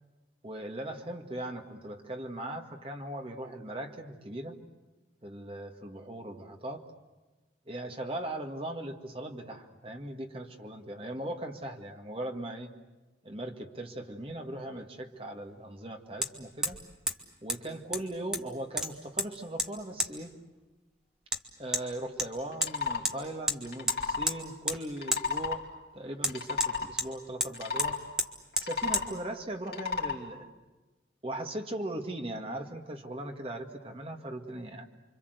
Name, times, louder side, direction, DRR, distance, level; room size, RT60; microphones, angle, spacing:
voice 1, 0.4-4.6 5.2-6.8 7.7-12.7 13.2-16.8 17.4-20.3 21.6-25.6 25.9-28.0 28.6-30.5 31.2-34.9, right 1 dB, 30° right, 4 dB, 2.0 m, -39 dB
Hammer, 14.3-14.4 16.2-16.3 16.6-16.8 17.1-17.2 17.5-17.6 17.9-18.5 18.8-19.3 19.6-19.7 20.0-20.1 21.3-21.4 21.7-21.8 22.2-22.7 23.0-23.2 23.5-23.6 23.9-24.4 24.7-24.8 25.1-25.2 26.2-27.1 27.4-27.5 27.8-27.9 28.2-28.3 28.6-28.7 28.9-29.1, equal, 5° right, 1.5 m, -30 dB
sound 1, 22.5-23.0 23.7-24.3 25.0-25.6 26.2-26.9 27.5-28.0 28.5-29.1 29.7-30.2, left 4 dB, 60° left, 3.2 m, -32 dB
29.5 x 24.5 x 8.1 m, 1.2 s
head